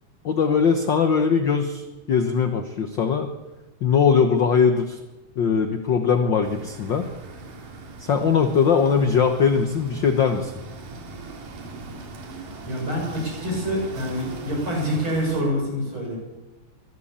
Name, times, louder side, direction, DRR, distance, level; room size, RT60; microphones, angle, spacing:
voice 1, 0.2-3.3 3.8-5.0 5.4-7.1 8.0-10.5, left 6 dB, 60° left, 7 dB, 1.2 m, -20 dB
sound 1, 6.4-15.4, right 3 dB, 90° right, 4.2 m, -40 dB
voice 2, 12.7-16.2, equal, 40° right, -1 dB, 8.0 m, -26 dB
24.0 x 13.0 x 8.7 m, 1.1 s
omnidirectional pair, 3.6 m